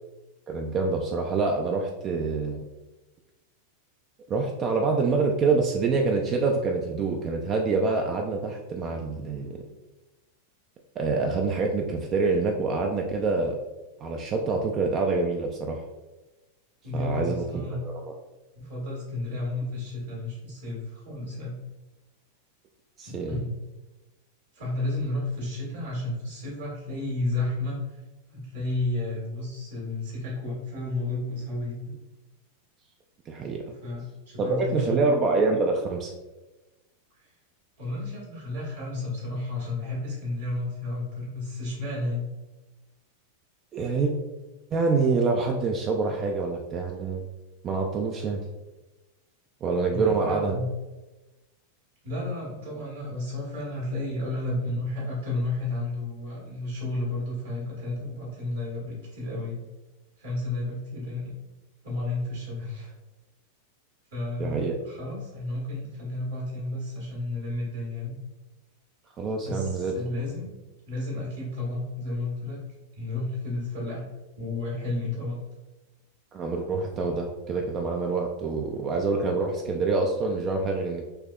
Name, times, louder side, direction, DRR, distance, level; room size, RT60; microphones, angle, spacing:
voice 1, 0.5-2.6 4.3-9.6 11.0-13.6 14.0-15.8 16.9-17.8 18.0-18.1 23.0-23.4 33.3-33.6 34.4-36.1 43.7-44.1 44.7-47.2 47.6-48.4 49.6-50.6 64.4-64.8 69.2-69.9 76.3-81.0, right 4 dB, 30° right, 2 dB, 0.3 m, -26 dB
voice 2, 16.8-17.9 18.5-21.6 23.1-23.6 24.5-28.0 28.3-32.0 33.8-35.1 37.1-37.3 37.8-42.3 49.9-50.7 52.0-59.6 60.2-61.3 61.8-62.9 64.1-68.2 69.4-70.5 70.8-72.6 72.9-74.0 74.4-75.4, left 2 dB, 60° right, -4 dB, 1.3 m, -32 dB
3.4 x 2.8 x 2.2 m, 1.1 s
figure-of-eight pair, 90°, 0 cm